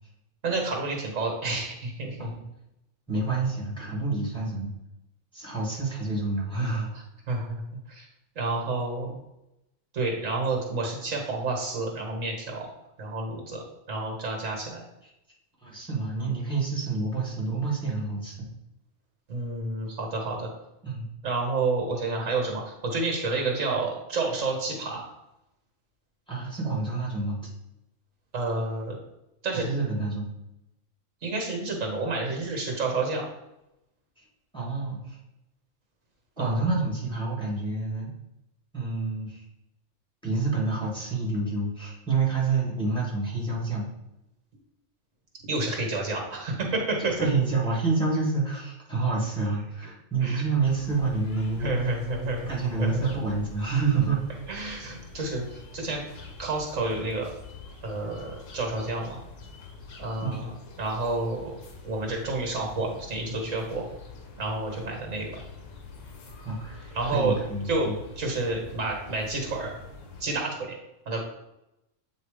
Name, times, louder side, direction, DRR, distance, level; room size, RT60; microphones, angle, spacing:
voice 1, 0.4-2.3 7.3-7.6 7.9-8.1 8.4-9.2 9.9-12.7 13.0-13.6 13.9-14.8 19.3-20.5 21.2-25.1 28.3-29.0 29.4-29.7 31.2-33.3 36.4-36.6 45.4-47.1 50.2-50.4 51.6-52.5 52.8-53.1 54.5-56.0 56.4-57.3 57.8-59.2 60.0-60.5 60.8-61.5 61.8-63.8 64.4-65.3 66.9-67.4 67.7-67.9 68.2-69.7 70.2-70.8 71.1-71.2, right 3 dB, 75° right, 1 dB, 1.7 m, -29 dB
voice 2, 3.1-4.7 5.3-6.9 15.6-18.5 20.8-21.1 26.3-27.5 29.5-30.3 34.5-35.2 36.4-38.1 38.7-39.4 40.2-43.8 47.1-51.9 52.5-54.2 55.2-55.3 60.2-60.5 66.4-68.0, right 3 dB, 5° left, -4 dB, 1.7 m, -28 dB
sound 1, 50.6-70.2, left 4 dB, 70° left, 1.2 m, -45 dB
8.0 x 2.7 x 4.9 m, 0.89 s
omnidirectional pair, 1.4 m